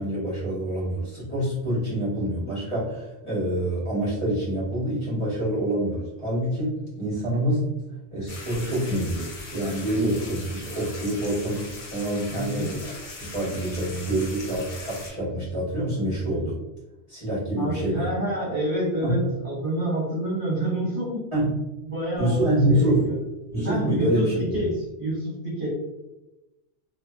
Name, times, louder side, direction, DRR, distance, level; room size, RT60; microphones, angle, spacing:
voice 1, 0.0-12.9 13.2-16.6 17.1-18.1 19.0-19.2 21.3-21.5 22.2-23.1 23.5-24.6, right 1 dB, 25° left, -10 dB, 1.1 m, -26 dB
sound 1, 8.3-15.1, left 3 dB, 55° left, 0.7 m, -40 dB
voice 2, 12.3-12.7 17.6-21.3 21.8-23.2 23.6-25.7, right 1 dB, 50° right, -7 dB, 1.1 m, -28 dB
2.6 x 2.4 x 2.3 m, 1.0 s
omnidirectional pair, 1.2 m